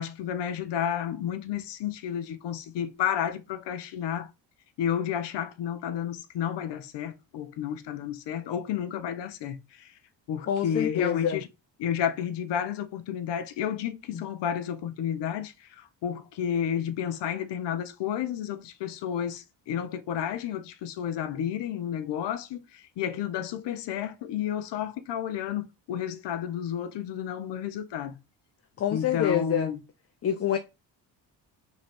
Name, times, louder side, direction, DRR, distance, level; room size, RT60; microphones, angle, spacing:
voice 1, 0.0-4.3 4.8-9.9 10.3-11.5 11.8-28.2 28.9-29.8, left 9 dB, 70° left, 0.8 m, -31 dB
voice 2, 10.5-11.4 14.1-14.2 28.8-29.7 30.2-30.6, left 9 dB, 35° left, 0.5 m, -26 dB
3.1 x 3.0 x 4.3 m
cardioid pair, 80°, 43 cm